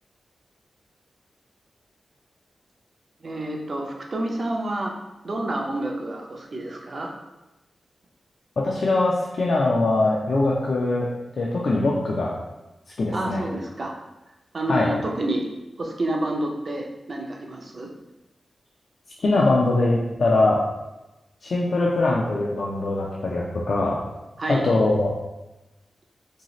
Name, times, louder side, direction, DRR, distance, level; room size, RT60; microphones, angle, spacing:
voice 1, 3.2-4.9 5.2-7.1 13.1-13.9 14.5-15.5 15.8-17.9 24.4-24.7, right 1 dB, 45° right, 1 dB, 0.5 m, -29 dB
voice 2, 8.6-11.1 11.4-12.3 13.0-13.4 14.7-14.9 19.2-20.6 21.4-24.0 24.5-25.1, left 2 dB, 60° left, -4 dB, 0.4 m, -22 dB
2.7 x 2.7 x 3.0 m, 1.0 s
wide cardioid pair, 130°, 0 cm